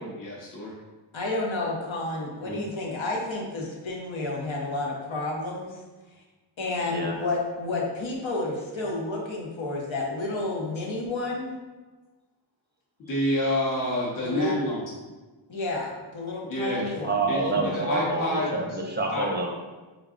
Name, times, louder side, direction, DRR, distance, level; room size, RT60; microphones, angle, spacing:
voice 1, 0.2-0.7 13.0-14.8 16.4-16.9 17.3-18.5 19.1-19.3, left 1 dB, 45° left, -6 dB, 0.8 m, -28 dB
voice 2, 1.1-5.8 6.6-11.6 14.2-14.6 15.5-17.2 17.4-17.9, left 2 dB, 75° left, -2 dB, 0.9 m, -31 dB
voice 3, 17.0-19.5, right 2 dB, 25° right, 0 dB, 0.5 m, -27 dB
3.6 x 2.2 x 3.6 m, 1.2 s
wide cardioid pair, 85°, 47 cm